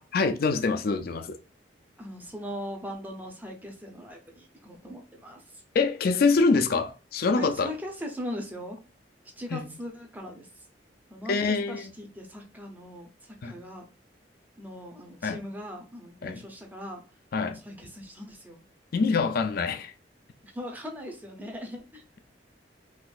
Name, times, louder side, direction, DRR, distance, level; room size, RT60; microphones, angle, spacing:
voice 1, 0.1-1.4 5.7-7.7 9.5-9.6 11.3-11.9 13.4-13.5 15.2-15.4 16.2-16.4 17.3-17.6 18.9-19.9, left 4 dB, 55° left, 0.4 m, -25 dB
voice 2, 2.0-5.6 7.4-8.8 9.4-10.7 11.1-13.8 14.6-17.0 17.6-18.6 20.4-22.0, equal, 10° right, 0.7 m, -40 dB
3.7 x 2.6 x 2.4 m
head